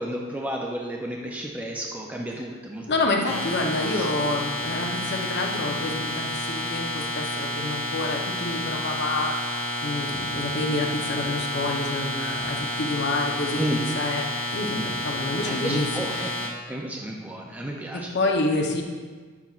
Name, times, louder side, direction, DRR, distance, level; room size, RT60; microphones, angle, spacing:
voice 1, 0.0-2.9 3.2-3.4 3.9-4.1 13.6-13.8 14.7-15.0 15.4-18.4, right 1 dB, 5° right, -1 dB, 0.4 m, -33 dB
voice 2, 2.9-13.6 14.0-14.3 14.5-16.3 18.1-18.8, left 2 dB, 50° left, 1 dB, 0.7 m, -28 dB
sound 1, 3.2-16.5, left 1 dB, 25° left, 1.2 m, -30 dB
8.1 x 5.9 x 2.4 m, 1.5 s
head